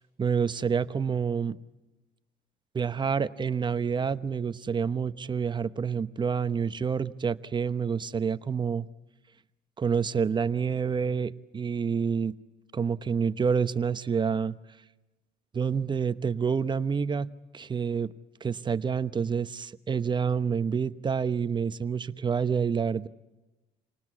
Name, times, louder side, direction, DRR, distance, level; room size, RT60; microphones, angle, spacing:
voice 1, 0.2-1.6 2.7-8.9 9.8-12.3 12.7-14.5 15.5-18.1 18.4-23.1, right 6 dB, 25° right, 13 dB, 0.9 m, -28 dB
28.0 x 19.5 x 8.5 m, 1.1 s
cardioid pair, 110°, 17 cm